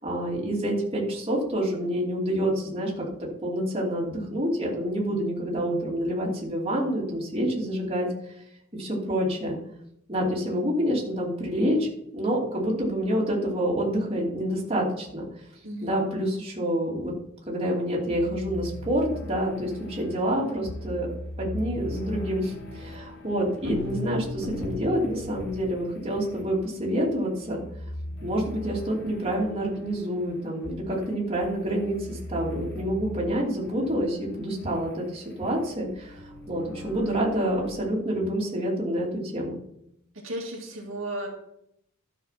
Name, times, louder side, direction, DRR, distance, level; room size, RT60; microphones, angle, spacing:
voice 1, 0.0-8.1 8.7-9.6 10.1-15.3 15.8-17.1 17.5-21.1 21.4-27.6 28.2-39.6, equal, 30° right, -4 dB, 2.8 m, -27 dB
sound 1, 18.1-37.7, left 1 dB, 65° left, 3.8 m, -39 dB
voice 2, 40.1-41.3, right 1 dB, 65° right, -1 dB, 2.1 m, -34 dB
12.5 x 5.9 x 5.8 m, 0.76 s
head